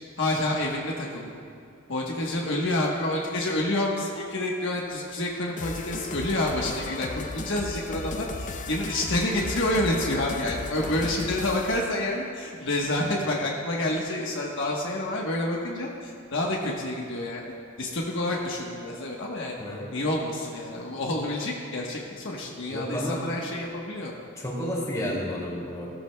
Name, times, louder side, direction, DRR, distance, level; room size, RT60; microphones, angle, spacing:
voice 1, 0.2-1.3 1.9-17.4 17.8-19.6 19.9-24.1, left 1 dB, 65° left, -2 dB, 1.2 m, -28 dB
sound 1, 5.6-11.9, left 3 dB, 40° left, 0.6 m, -35 dB
voice 2, 19.6-19.9 22.7-23.2 24.4-25.9, equal, 15° left, -4 dB, 2.4 m, -31 dB
17.0 x 13.0 x 2.3 m, 2.3 s
head